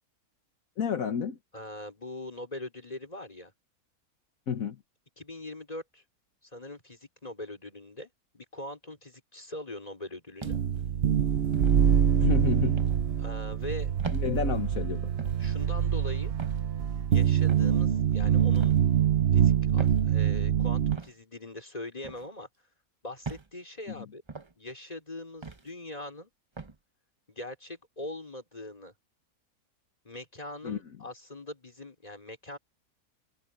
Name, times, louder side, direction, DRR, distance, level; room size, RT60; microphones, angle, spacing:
voice 1, 0.8-1.4 4.5-4.8 12.2-12.8 14.1-15.1 23.9-24.0 30.6-30.8, left 7 dB, 65° left, 1.6 m, -30 dB
voice 2, 1.5-3.5 5.2-6.0 6.5-8.1 8.3-10.6 13.2-13.9 15.4-16.3 17.1-18.8 19.3-22.5 23.0-24.2 24.6-26.3 27.3-28.9 30.0-32.6, left 1 dB, 25° left, 4.9 m, -41 dB
sound 1, 10.4-10.8 11.5-11.8 12.8-13.0 14.0-14.3 15.2-15.4 16.4-16.6 17.5-17.7 18.5-18.8 19.8-20.0 20.9-21.1 22.0-22.3 23.2-23.5 24.3-24.5 25.4-25.7 26.6-26.8, right 4 dB, 20° right, 0.9 m, -40 dB
sound 2, 10.5-21.0, right 9 dB, 50° right, 0.9 m, -25 dB
omnidirectional pair, 1.6 m